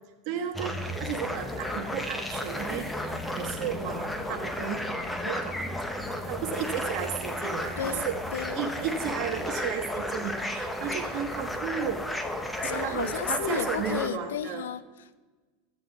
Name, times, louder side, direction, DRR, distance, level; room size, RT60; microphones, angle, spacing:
voice 1, 0.3-2.9 3.4-4.8 5.2-5.6 6.2-8.2 8.5-12.3 12.6-14.7, right 8 dB, 55° right, 3 dB, 1.2 m, -34 dB
sound 1, 0.5-14.1, left 1 dB, 10° left, 0.9 m, -33 dB
voice 2, 7.8-8.7 12.6-15.2, left 9 dB, 85° left, 16 dB, 0.5 m, -33 dB
13.0 x 8.5 x 3.3 m, 1.3 s
hypercardioid pair, 105°, 0 cm